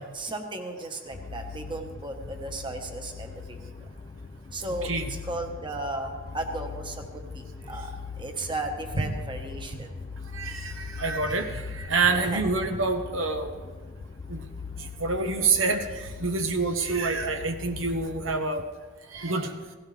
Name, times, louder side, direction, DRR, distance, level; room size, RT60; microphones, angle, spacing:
voice 1, 0.0-3.9 4.5-7.9 8.2-9.9 12.0-12.5, right 2 dB, 25° right, 4 dB, 1.3 m, -35 dB
sound 1, 1.1-18.4, left 5 dB, 30° left, 0.3 m, -41 dB
voice 2, 10.3-13.5 14.3-14.4 15.0-18.6 19.1-19.5, right 3 dB, 75° right, 6 dB, 1.1 m, -27 dB
17.5 x 16.5 x 3.4 m, 1.4 s
head